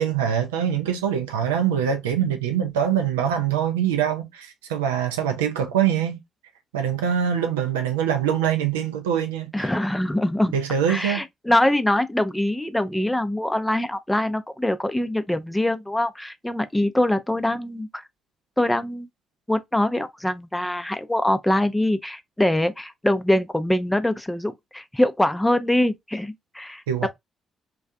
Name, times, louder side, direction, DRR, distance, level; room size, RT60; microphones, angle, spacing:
voice 1, 0.0-6.2 6.7-9.7 10.5-11.2 26.9-27.1, right 8 dB, 80° right, 0.4 m, -24 dB
voice 2, 9.5-10.5 10.9-18.0 18.6-19.1 19.5-27.1, left 1 dB, 10° left, 0.4 m, -23 dB
2.5 x 2.3 x 2.2 m
hypercardioid pair, 40°, 0 cm